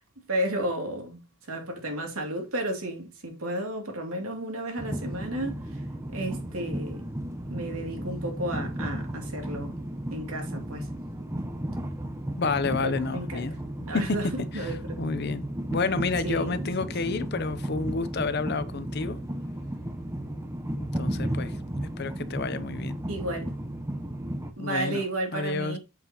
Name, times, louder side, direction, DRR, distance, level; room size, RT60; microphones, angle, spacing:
voice 1, 0.3-5.8 6.1-7.1 7.5-9.7 10.1-10.9 12.8-13.5 13.8-14.3 14.5-15.0 16.2-17.2 23.1-23.5 24.6-25.8, right 1 dB, 85° right, 2.6 m, -33 dB
Train, 4.8-24.5, right 1 dB, 15° right, 0.8 m, -34 dB
voice 2, 12.4-13.5 14.5-14.7 15.0-19.2 20.8-21.5 22.0-23.0 24.6-25.0 25.3-25.8, left 4 dB, 50° left, 0.7 m, -30 dB
7.7 x 6.8 x 3.0 m
head